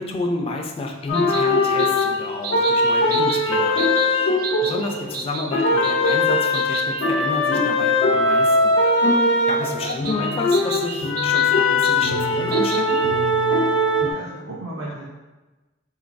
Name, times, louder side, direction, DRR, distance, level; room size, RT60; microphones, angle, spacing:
voice 1, 0.0-3.9 4.6-8.7 9.5-13.0, left 2 dB, 30° left, 2 dB, 0.3 m, -30 dB
sound 1, 1.1-5.2 5.5-14.1, left 2 dB, 80° left, 0.6 m, -20 dB
sound 2, 1.1-7.1 9.9-13.1, right 5 dB, 50° right, 0.3 m, -33 dB
voice 2, 4.6-5.0 9.6-9.9 14.1-15.0, right 2 dB, 80° right, -6 dB, 0.7 m, -35 dB
3.7 x 3.1 x 2.5 m, 1.1 s
head